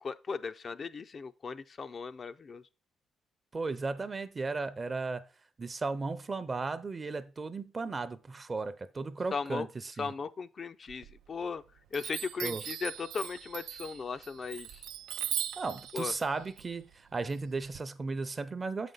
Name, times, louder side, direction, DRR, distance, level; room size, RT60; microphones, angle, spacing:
voice 1, 0.0-2.6 9.3-9.7 10.0-11.6 11.9-14.8 15.9-16.1, left 5 dB, 45° left, 0.4 m, -37 dB
voice 2, 3.5-5.2 5.6-10.1 12.4-12.6 15.6-18.9, right 3 dB, 30° right, 0.6 m, -35 dB
Chime, 10.9-11.6 11.9-17.8, right 11 dB, 90° right, 0.3 m, -40 dB
7.5 x 5.1 x 3.9 m
cardioid pair, 90°, 0 cm